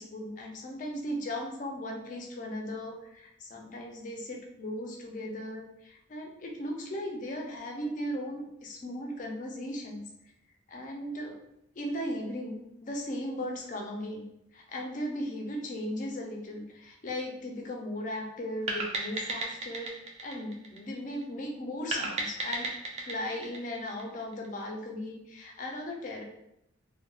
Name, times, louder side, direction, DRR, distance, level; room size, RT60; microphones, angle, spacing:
voice 1, 0.0-10.0 10.7-11.4 11.7-14.3 14.5-22.7 23.0-26.2, left 1 dB, 40° left, 1 dB, 0.4 m, -37 dB
sound 1, 18.7-21.2 21.9-24.5, right 2 dB, 35° right, 0.3 m, -35 dB
2.3 x 2.1 x 2.9 m, 0.80 s
head